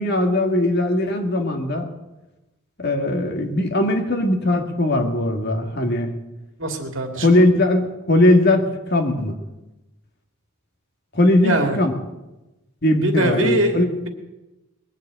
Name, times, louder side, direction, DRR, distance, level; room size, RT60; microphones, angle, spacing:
voice 1, 0.0-1.9 2.8-6.1 7.2-9.4 11.1-11.9 12.8-13.9, left 1 dB, 50° left, 4 dB, 1.9 m, -19 dB
voice 2, 6.6-7.4 11.4-11.8 13.0-13.8, right 1 dB, 60° right, 4 dB, 2.3 m, -22 dB
20.5 x 7.2 x 8.9 m, 1.0 s
head